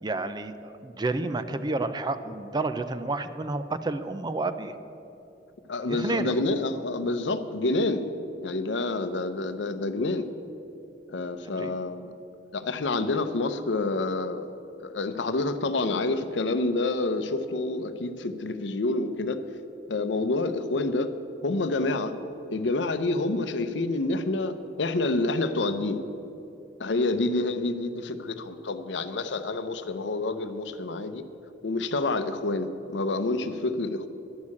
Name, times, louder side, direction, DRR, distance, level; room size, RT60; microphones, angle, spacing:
voice 1, 0.0-4.7 5.9-6.4 11.6-11.7, right 2 dB, 25° right, 11 dB, 0.4 m, -30 dB
voice 2, 5.7-8.0 8.4-10.3 11.1-12.1 12.5-14.4 14.8-19.4 19.9-21.1 21.4-22.2 22.5-26.0 26.8-31.2 31.6-34.1, left 2 dB, 90° left, 11 dB, 0.7 m, -28 dB
11.0 x 6.5 x 8.4 m, 2.9 s
head